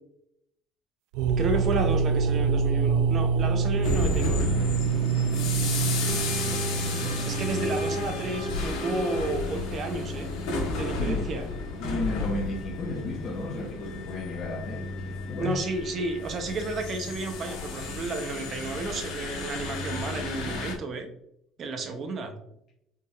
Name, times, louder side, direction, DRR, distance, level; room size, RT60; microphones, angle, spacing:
sound 1, 1.1-8.9, right 5 dB, 85° right, 0.3 m, -26 dB
voice 1, 1.4-4.5 7.3-10.3 10.7-11.5 15.4-21.1 21.6-22.3, right 3 dB, 35° right, 6 dB, 0.6 m, -32 dB
sound 2, 3.8-20.7, left 3 dB, 90° left, 1.4 m, -32 dB
voice 2, 6.0-7.4 11.0-11.2 11.8-15.6, left 2 dB, 35° left, -4 dB, 0.8 m, -34 dB
4.4 x 3.4 x 2.4 m, 0.77 s
cardioid pair, 155°, 0 cm